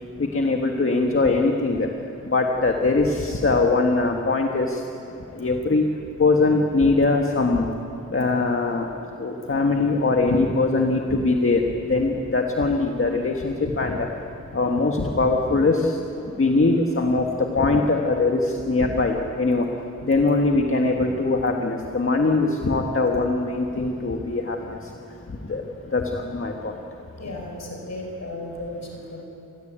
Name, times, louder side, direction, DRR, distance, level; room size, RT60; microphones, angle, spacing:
voice 1, 0.3-1.9 2.3-4.8 5.4-5.8 6.2-7.7 8.1-8.9 9.2-11.6 11.9-14.1 14.5-19.7 20.1-24.6 25.5-25.6 25.9-26.7, left 3 dB, 40° left, 2 dB, 1.7 m, -21 dB
voice 2, 27.2-29.2, left 1 dB, 60° left, 1 dB, 4.8 m, -35 dB
27.5 x 20.5 x 9.0 m, 2.8 s
wide cardioid pair, 135°, 32 cm